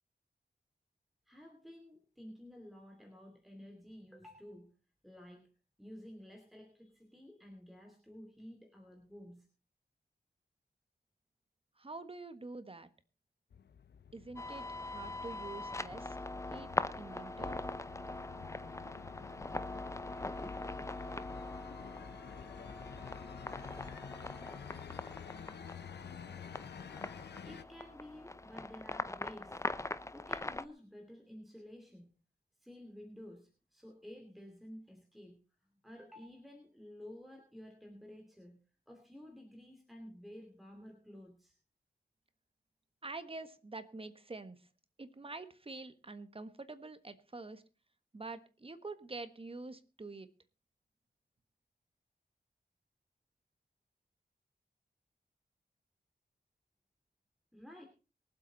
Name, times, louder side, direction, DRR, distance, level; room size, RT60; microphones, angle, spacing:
voice 1, 1.3-4.7 5.0-5.5 5.8-9.5 27.4-29.6 30.1-32.2 32.6-35.4 35.8-38.6 38.9-41.5 57.5-57.9, left 1 dB, ahead, 2 dB, 2.7 m, -52 dB
voice 2, 11.8-12.9 14.1-16.7 17.0-17.6 43.0-44.6 45.0-47.6 48.1-50.3, right 3 dB, 35° right, 11 dB, 1.4 m, -46 dB
sound 1, 13.5-27.6, left 7 dB, 85° left, 0.7 m, -51 dB
sound 2, 14.4-30.7, left 2 dB, 15° left, 0.6 m, -42 dB
23.5 x 8.0 x 4.1 m, 0.33 s
wide cardioid pair, 85°, 17 cm